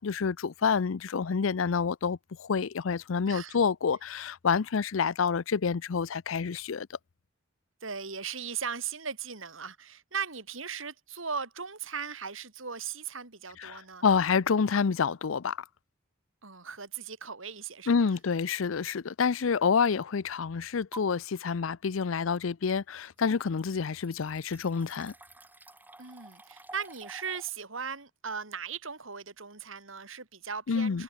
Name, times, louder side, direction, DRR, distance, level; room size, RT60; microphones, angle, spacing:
voice 1, 0.0-6.9 13.6-15.6 17.9-25.1 30.7-31.0, left 5 dB, 75° left, 0.5 m, -28 dB
voice 2, 3.3-3.6 7.8-14.1 16.4-18.1 26.0-31.0, right 6 dB, 75° right, 4.2 m, -38 dB
sound 1, 18.1-18.4 18.9-19.0 20.9-21.0 22.8-22.9 23.2-27.5, right 2 dB, 10° right, 6.6 m, -51 dB
head